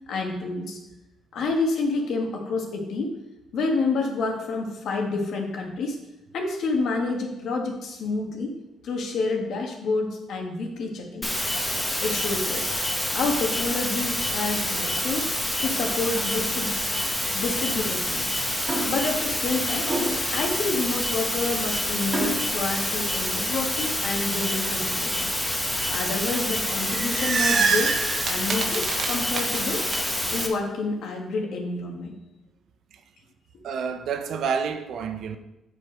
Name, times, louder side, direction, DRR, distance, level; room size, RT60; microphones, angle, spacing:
voice 1, 0.1-0.8 1.3-3.1 3.5-6.0 6.3-8.6 8.8-11.4 12.0-12.7 13.1-15.3 15.6-16.7 17.3-18.4 18.9-19.9 20.3-25.3 25.9-27.9 28.3-30.0 30.3-32.1, left 3 dB, 70° left, 1 dB, 1.8 m, -28 dB
sound 1, 11.2-30.5, left 1 dB, 10° left, 1.3 m, -27 dB
sound 2, 18.7-19.1 19.8-20.4 22.1-22.5, right 1 dB, 20° right, 2.0 m, -28 dB
sound 3, 26.7-30.0, right 5 dB, 55° right, 1.3 m, -26 dB
voice 2, 33.6-35.4, right 6 dB, 70° right, 7 dB, 0.9 m, -29 dB
8.3 x 5.4 x 5.2 m, 0.95 s
cardioid pair, 90°, 0 cm